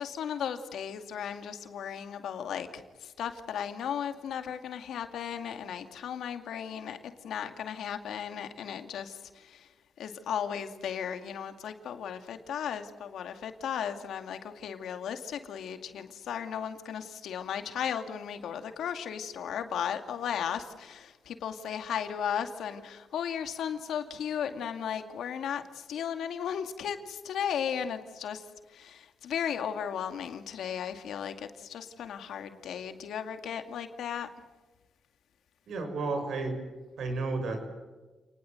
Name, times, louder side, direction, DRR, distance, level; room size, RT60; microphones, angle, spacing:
voice 1, 0.0-9.7 10.0-34.3, left 8 dB, 85° left, 7 dB, 2.3 m, -35 dB
voice 2, 35.7-36.6 37.0-37.6, right 3 dB, 70° right, 6 dB, 6.4 m, -32 dB
29.5 x 20.0 x 7.9 m, 1.2 s
cardioid pair, 105°, 0 cm